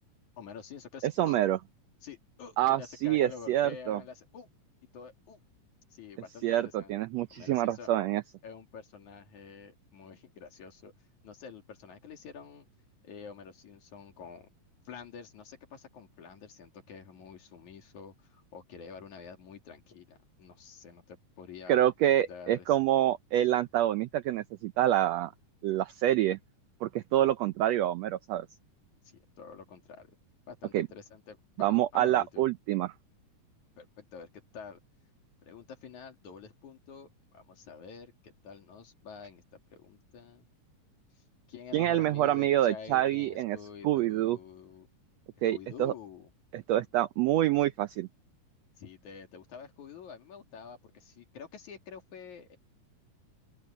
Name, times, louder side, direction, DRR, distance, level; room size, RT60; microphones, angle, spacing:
voice 1, 0.4-1.4 2.0-4.5 4.9-5.4 5.9-6.9 7.3-7.9 8.4-10.9 11.2-12.7 13.0-14.5 14.9-21.8 22.3-22.8 29.1-30.2 30.5-32.5 33.8-34.8 35.4-39.4 39.7-40.5 41.5-44.9 45.5-46.3 48.8-52.6, left 6 dB, 65° left, 3.9 m, -48 dB
voice 2, 1.0-1.6 2.6-4.0 6.4-8.2 21.7-25.3 25.6-26.4 26.8-28.5 30.7-30.9 31.6-32.9 41.7-43.6 43.8-44.4 45.4-45.9 46.5-48.1, right 13 dB, 85° right, 1.5 m, -27 dB
open air
omnidirectional pair, 3.8 m